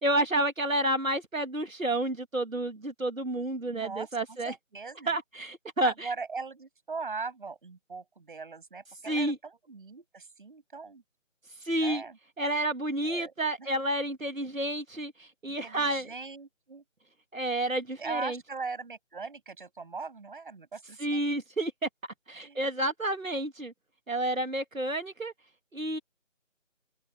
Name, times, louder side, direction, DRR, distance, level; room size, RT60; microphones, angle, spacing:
voice 1, 0.0-4.5 5.1-6.1 9.1-9.4 11.6-12.0 12.4-16.1 17.3-18.4 21.0-21.7 22.3-23.7 24.1-25.3 25.7-26.0, right 1 dB, 85° right, 2.2 m, -30 dB
voice 2, 3.7-5.1 5.8-11.0 11.8-12.2 13.0-13.3 13.6-13.7 15.5-16.8 18.0-21.2 22.4-22.7, right 4 dB, 40° right, 7.5 m, -40 dB
open air
figure-of-eight pair, 165°, 39 cm